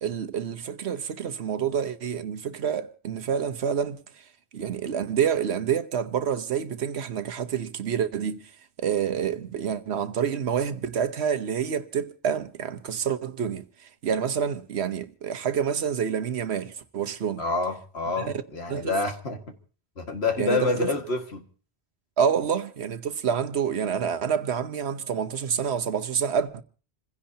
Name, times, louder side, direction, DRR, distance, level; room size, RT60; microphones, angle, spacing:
voice 1, 0.0-4.3 4.5-8.4 8.8-17.4 18.7-19.0 20.4-20.9 22.2-26.6, right 7 dB, 85° right, 1.2 m, -28 dB
voice 2, 17.4-19.5 20.0-21.4, left 3 dB, 80° left, 2.1 m, -28 dB
27.5 x 16.0 x 2.8 m
omnidirectional pair, 1.1 m